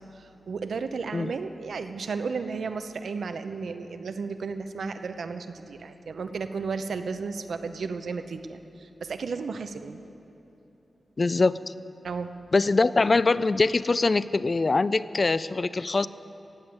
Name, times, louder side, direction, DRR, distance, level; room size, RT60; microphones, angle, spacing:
voice 1, 0.1-10.0 12.0-12.3, right 4 dB, 85° right, 9 dB, 0.6 m, -33 dB
voice 2, 11.2-11.6 12.5-16.1, left 3 dB, 40° left, 16 dB, 0.3 m, -23 dB
15.0 x 7.9 x 8.9 m, 3.0 s
wide cardioid pair, 135°, 0 cm